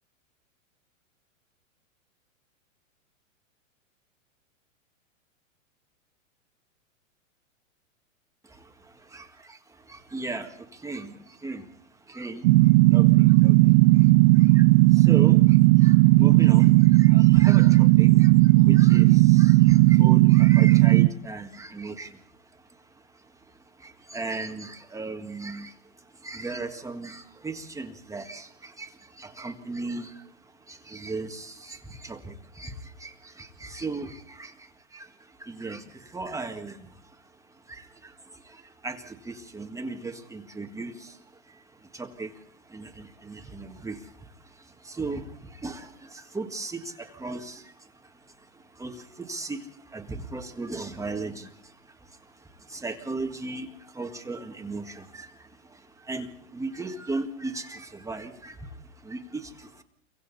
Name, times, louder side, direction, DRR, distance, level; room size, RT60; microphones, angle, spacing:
voice 1, 8.4-34.5 34.9-59.8, right 3 dB, 10° right, 4 dB, 1.8 m, -38 dB
sound 1, 12.4-21.1, right 21 dB, 50° right, 0.7 m, -16 dB
28.5 x 24.0 x 4.2 m, 0.73 s
hypercardioid pair, 135°, 40 cm